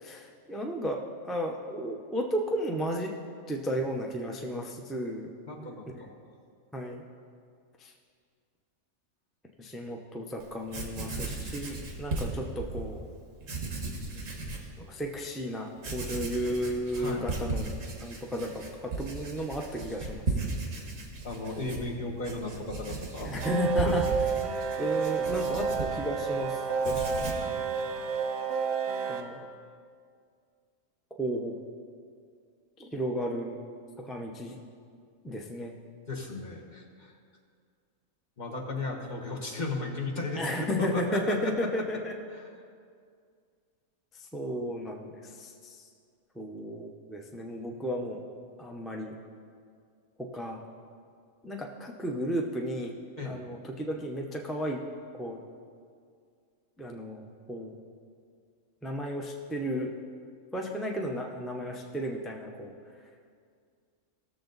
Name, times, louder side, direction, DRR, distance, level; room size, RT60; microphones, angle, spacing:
voice 1, 0.0-3.1 3.5-5.3 5.6-6.1 6.7-7.0 7.8-7.9 9.6-13.0 14.8-20.2 23.2-24.0 24.8-27.3 29.0-29.5 31.2-31.6 32.8-33.6 34.0-34.6 35.2-35.7 40.4-42.1 44.1-45.8 46.3-48.2 48.6-49.1 50.2-50.6 51.4-52.9 53.2-54.8 55.2-55.4 56.8-57.8 58.8-59.9 60.5-62.7, equal, ahead, 0 dB, 0.4 m, -34 dB
voice 2, 5.5-6.1 17.0-17.3 21.2-23.5 23.8-24.0 36.1-37.1 38.4-41.7 42.3-42.5 53.2-53.4, left 3 dB, 35° left, -1 dB, 1.3 m, -35 dB
Writing, 10.4-10.5 10.7-12.9 13.4-14.7 15.2-15.3 15.8-26.4 26.7-27.5, right 3 dB, 65° right, 1.8 m, -36 dB
sound 1, 23.4-29.2, right 5 dB, 90° right, 1.4 m, -30 dB
17.5 x 7.0 x 4.0 m, 2.2 s
omnidirectional pair, 1.5 m